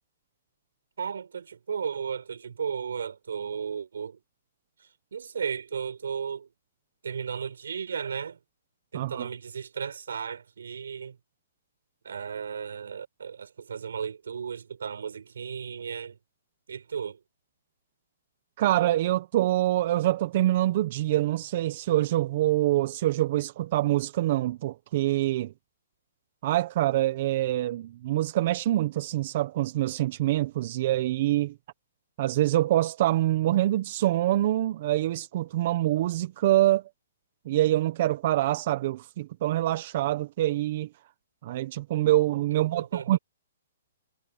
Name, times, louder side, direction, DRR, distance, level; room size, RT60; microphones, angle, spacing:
voice 1, 1.0-4.2 5.1-6.5 7.0-8.4 8.9-11.2 12.0-16.2 16.7-17.2 42.5-43.2, right 7 dB, 80° right, 5.0 m, -35 dB
voice 2, 8.9-9.3 18.6-25.5 26.4-31.5 32.2-36.8 37.4-40.9 41.4-43.2, right 14 dB, 50° right, 1.1 m, -25 dB
hypercardioid pair, 145°, 0 cm